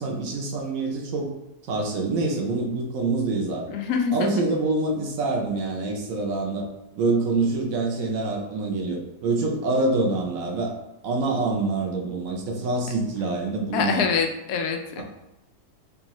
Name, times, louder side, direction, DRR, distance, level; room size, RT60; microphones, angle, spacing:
voice 1, 0.0-1.3 1.7-3.7 4.1-6.7 6.9-10.7 11.0-14.1 15.0-15.1, right 3 dB, 65° right, 1 dB, 1.0 m, -26 dB
voice 2, 3.7-4.4 13.7-15.0, left 6 dB, 80° left, 4 dB, 1.1 m, -25 dB
3.6 x 3.3 x 3.0 m, 0.95 s
omnidirectional pair, 1.7 m